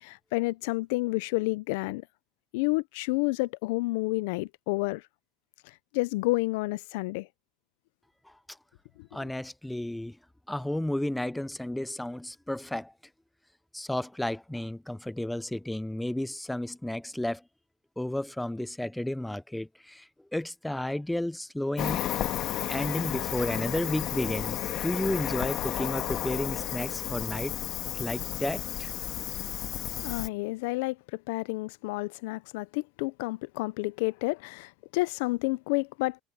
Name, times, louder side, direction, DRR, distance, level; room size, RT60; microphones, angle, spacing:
voice 1, 0.0-2.0 2.5-5.0 5.9-7.3 9.0-9.1 30.0-36.2, left 23 dB, 80° left, 0.4 m, -30 dB
voice 2, 9.1-10.2 10.5-12.9 13.7-17.4 18.0-22.0 22.7-27.6 27.9-28.9, left 1 dB, 5° left, 0.4 m, -32 dB
Cricket, 21.8-30.3, left 12 dB, 45° left, 1.6 m, -32 dB
cardioid pair, 155°, 0 cm